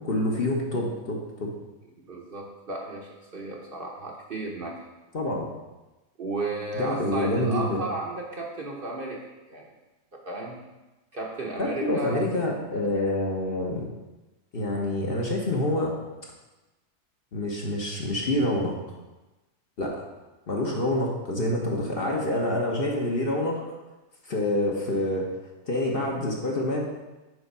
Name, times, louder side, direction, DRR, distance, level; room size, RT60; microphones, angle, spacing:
voice 1, 0.0-1.5 5.1-5.5 6.8-7.8 11.6-13.8 14.5-15.9 17.3-18.8 19.8-20.0 20.5-23.7 24.3-25.3 25.7-26.8, left 1 dB, 45° left, -1 dB, 1.1 m, -27 dB
voice 2, 1.9-4.9 6.2-9.2 9.5-9.7 10.3-10.6 11.1-12.2, right 2 dB, 45° right, -2 dB, 0.9 m, -34 dB
8.0 x 3.5 x 5.4 m, 1.1 s
omnidirectional pair, 1.5 m